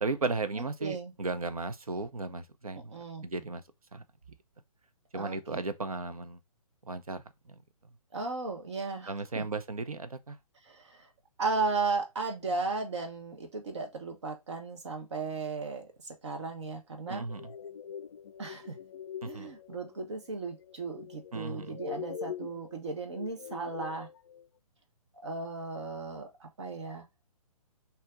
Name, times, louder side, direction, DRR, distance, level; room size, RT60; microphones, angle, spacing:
voice 1, 0.0-3.6 3.9-4.0 5.1-6.4 6.9-7.2 9.1-10.4 17.1-17.5 19.2-19.5 21.3-21.8, right 3 dB, 70° right, 0.7 m, -35 dB
voice 2, 0.5-1.1 2.9-3.2 5.1-5.6 8.1-9.4 10.6-11.1 11.4-17.2 18.4-18.8 19.2-24.1 25.2-27.0, right 4 dB, 50° right, 1.0 m, -35 dB
sound 1, 17.1-24.5, left 7 dB, 45° left, 0.4 m, -44 dB
4.3 x 2.8 x 3.6 m
figure-of-eight pair, 135°, 19 cm